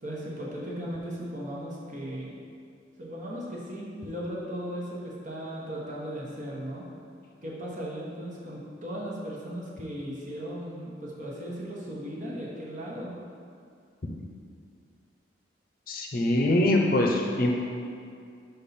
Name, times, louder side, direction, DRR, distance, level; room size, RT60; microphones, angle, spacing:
voice 1, 0.0-2.4 3.0-6.9 7.4-13.1, equal, 40° right, -4 dB, 1.1 m, -37 dB
voice 2, 15.9-17.5, left 1 dB, 50° left, 1 dB, 0.6 m, -23 dB
5.5 x 5.3 x 4.2 m, 2.3 s
head